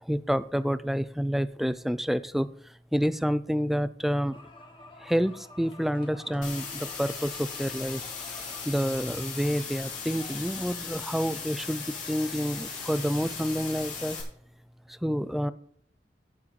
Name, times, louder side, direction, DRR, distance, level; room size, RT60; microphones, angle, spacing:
voice 1, 0.0-2.5 2.9-4.4 5.0-8.0 8.7-14.2 14.9-15.5, equal, ahead, 14 dB, 0.3 m, -28 dB
sound 1, 4.3-14.2, left 2 dB, 30° left, 1.5 m, -52 dB
sound 2, 6.4-14.2, left 5 dB, 45° left, 2.9 m, -38 dB
15.5 x 7.3 x 3.2 m, 0.64 s
head